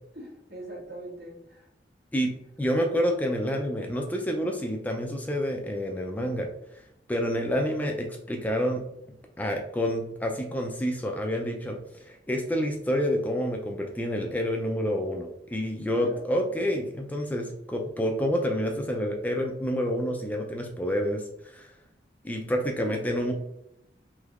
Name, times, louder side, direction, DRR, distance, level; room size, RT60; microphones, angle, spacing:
voice 1, 0.1-1.7 15.9-16.2 22.8-23.0, right 1 dB, 70° right, -4 dB, 1.4 m, -41 dB
voice 2, 2.6-6.5 7.1-8.8 9.4-21.7 22.2-23.3, equal, 10° left, 2 dB, 0.3 m, -28 dB
3.3 x 3.0 x 2.3 m, 0.81 s
head